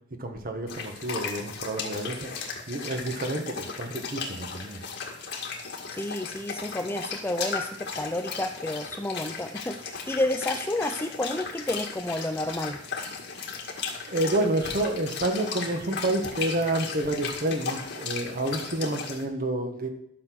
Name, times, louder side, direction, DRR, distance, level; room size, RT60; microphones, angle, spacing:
voice 1, 0.2-2.3 2.7-4.8 14.1-19.9, right 1 dB, 45° right, 5 dB, 1.6 m, -29 dB
sound 1, 0.7-19.2, left 5 dB, 60° left, 1.9 m, -36 dB
voice 2, 5.9-12.8, left 1 dB, 10° left, 7 dB, 0.5 m, -30 dB
12.0 x 6.7 x 6.2 m, 0.75 s
head